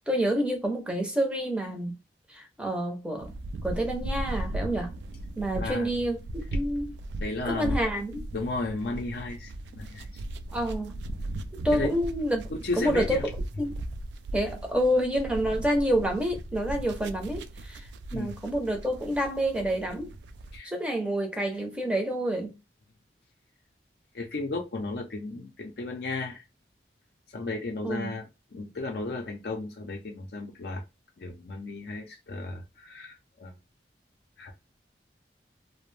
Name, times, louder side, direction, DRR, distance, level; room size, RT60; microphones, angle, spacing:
voice 1, 0.1-1.9 2.3-3.3 3.6-4.9 5.4-6.9 7.4-8.3 10.5-11.1 11.5-12.4 12.8-13.2 13.6-13.8 14.3-20.1 20.6-22.6 27.8-28.1, equal, 5° right, 0.6 m, -28 dB
sound 1, 3.2-20.6, right 1 dB, 80° right, 0.3 m, -37 dB
voice 2, 5.6-5.9 7.2-7.8 8.3-10.2 11.7-11.9 12.5-13.2 18.1-18.3 20.5-20.7 24.1-26.4 27.3-30.8 31.2-33.5 34.4-34.5, left 2 dB, 60° left, 0.5 m, -34 dB
2.5 x 2.0 x 3.1 m
head